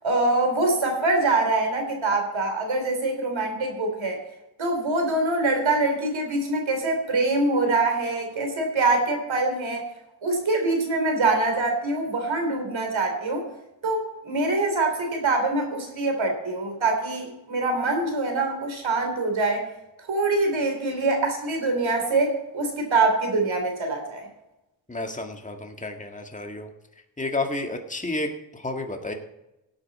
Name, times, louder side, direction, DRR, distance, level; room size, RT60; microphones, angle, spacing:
voice 1, 0.0-4.2 4.6-9.9 10.2-13.4 13.8-19.7 20.1-24.2, right 2 dB, 85° right, 4 dB, 3.7 m, -24 dB
voice 2, 24.9-26.7 27.2-29.1, left 2 dB, 15° left, 4 dB, 1.8 m, -31 dB
17.5 x 8.9 x 4.3 m, 0.93 s
wide cardioid pair, 75°, 45 cm